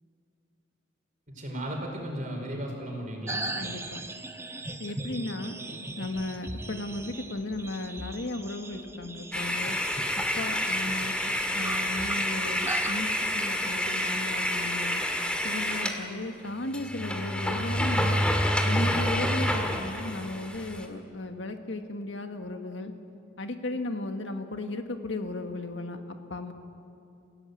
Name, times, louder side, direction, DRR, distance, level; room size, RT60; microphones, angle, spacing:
voice 1, 1.3-3.4, right 1 dB, 40° right, 1 dB, 5.0 m, -35 dB
sound 1, 3.3-13.0, right 2 dB, 15° right, 0.9 m, -39 dB
voice 2, 3.6-4.0 4.8-5.6 6.0-9.8 10.3-15.0 15.4-18.3 18.6-22.9 23.4-26.5, left 2 dB, 70° left, 6 dB, 1.6 m, -35 dB
sound 2, 9.3-16.0 16.4-16.5 16.7-20.9, left 1 dB, 5° left, 2.0 m, -28 dB
29.5 x 16.5 x 8.3 m, 2.7 s
head